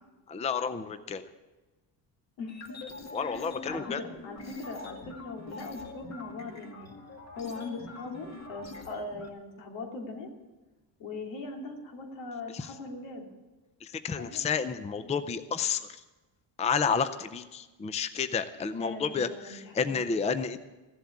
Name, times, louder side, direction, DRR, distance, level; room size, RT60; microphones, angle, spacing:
voice 1, 0.3-1.3 3.1-4.0 12.5-12.7 13.8-16.0 16.6-20.6, left 6 dB, 15° left, 11 dB, 0.5 m, -31 dB
voice 2, 2.4-2.8 3.2-7.0 7.3-10.3 11.0-13.3 14.2-14.5 18.8-20.0, left 3 dB, 85° left, 1 dB, 2.9 m, -40 dB
sound 1, 2.5-9.3, left 3 dB, 40° left, 2.0 m, -44 dB
15.0 x 7.8 x 8.5 m, 1.2 s
cardioid pair, 130°, 43 cm